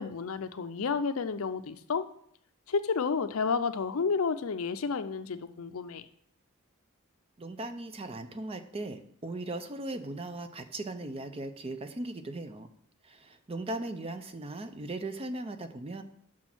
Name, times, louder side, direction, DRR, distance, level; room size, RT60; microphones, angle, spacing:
voice 1, 0.0-2.0 2.7-6.0, left 5 dB, 75° left, 11 dB, 0.5 m, -31 dB
voice 2, 7.4-12.7 13.0-16.0, right 2 dB, 25° right, 9 dB, 0.6 m, -38 dB
6.2 x 5.9 x 6.0 m, 0.68 s
head